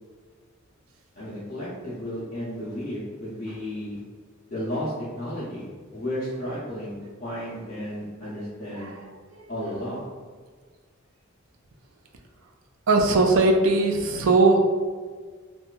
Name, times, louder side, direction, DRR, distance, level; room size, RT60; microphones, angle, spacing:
voice 1, 1.2-4.0 4.5-7.0 7.2-8.9 9.5-10.0, equal, 40° left, -10 dB, 0.5 m, -33 dB
voice 2, 12.9-14.6, right 3 dB, 65° right, 2 dB, 0.4 m, -19 dB
2.7 x 2.2 x 2.3 m, 1.5 s
head